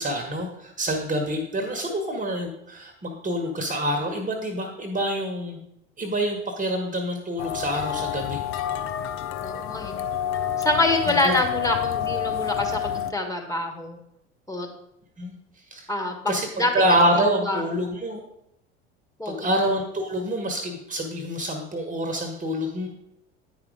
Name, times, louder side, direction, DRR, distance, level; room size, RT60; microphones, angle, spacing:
voice 1, 0.0-5.6 6.0-8.4 11.1-11.4 15.2-15.3 15.7-15.9 16.3-18.2 19.2-22.9, equal, 20° right, 4 dB, 1.2 m, -26 dB
sound 1, 7.4-13.1, left 9 dB, 40° left, 0.6 m, -28 dB
voice 2, 9.4-10.0 10.6-14.0 14.5-14.7 15.9-16.7 17.4-17.6 19.2-19.5, left 2 dB, 10° left, 2 dB, 1.6 m, -26 dB
9.5 x 4.9 x 4.9 m, 0.79 s
figure-of-eight pair, 70°, 34 cm